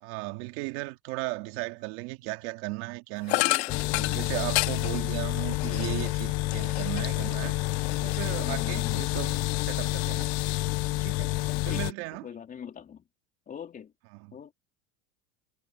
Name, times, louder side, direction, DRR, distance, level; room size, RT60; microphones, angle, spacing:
voice 1, 0.0-3.5 3.9-7.6 8.0-9.3 9.6-10.4 11.0-11.4 11.6-12.3 14.1-14.4, right 24 dB, 70° right, 2.7 m, -36 dB
sound 1, 3.3-7.3 7.7-8.8, left 24 dB, 80° left, 4.5 m, -31 dB
voice 2, 3.4-4.2 4.9-5.1 8.4-9.0 11.7-11.9 12.2-13.0 13.5-13.9 14.3-14.5, left 8 dB, 25° left, 3.8 m, -42 dB
sound 2, 3.7-11.9, left 21 dB, 55° left, 0.9 m, -29 dB
supercardioid pair, 145°, 32 cm